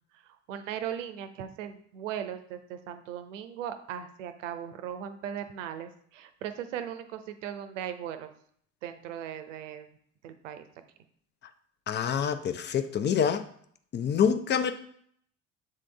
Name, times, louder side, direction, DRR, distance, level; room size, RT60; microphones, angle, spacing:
voice 1, 0.2-8.3 8.8-9.9 10.2-10.6, right 9 dB, 70° right, 0.7 m, -38 dB
voice 2, 11.9-13.4 13.9-14.7, left 7 dB, 30° left, 0.5 m, -26 dB
7.5 x 3.7 x 3.3 m
figure-of-eight pair, 60°, 39 cm